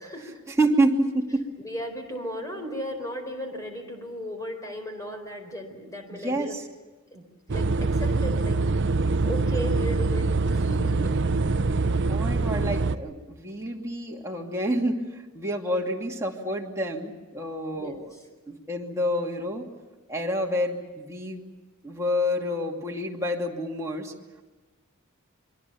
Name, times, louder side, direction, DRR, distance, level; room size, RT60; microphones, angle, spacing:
voice 1, 0.0-0.4 1.6-6.6 7.1-8.6 9.3-11.1 17.7-18.2, equal, 15° left, 4 dB, 4.4 m, -36 dB
voice 2, 0.6-1.4 6.1-6.6 12.1-18.2 18.5-19.6 20.1-21.4 21.8-24.1, equal, 15° right, -1 dB, 2.5 m, -28 dB
sound 1, 7.5-13.0, right 3 dB, 55° right, 0.7 m, -24 dB
27.5 x 23.0 x 7.0 m, 1.2 s
head